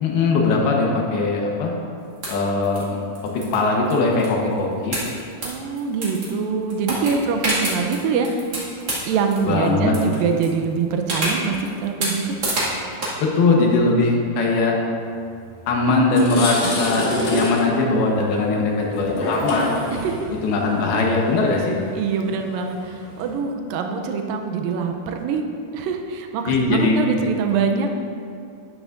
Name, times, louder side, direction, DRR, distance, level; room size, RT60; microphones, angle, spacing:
voice 1, 0.0-1.7 2.3-2.8 3.3-5.0 9.5-9.9 13.2-14.7 15.7-19.8 20.4-21.8 26.5-27.0, left 3 dB, 75° left, -1 dB, 3.0 m, -20 dB
sound 1, 2.2-2.8 3.2-4.6 4.9-6.4 6.7-9.7 9.9-10.5 11.1-13.1, right 1 dB, 35° right, 1.8 m, -26 dB
voice 2, 5.4-8.3 9.1-12.4 19.9-20.3 22.0-25.4 25.7-27.9, right 5 dB, 80° right, 4 dB, 2.1 m, -24 dB
sound 2, 15.5-15.6 16.0-23.3, left 1 dB, 55° left, 2.1 m, -27 dB
12.5 x 9.8 x 2.6 m, 2.4 s
omnidirectional pair, 4.6 m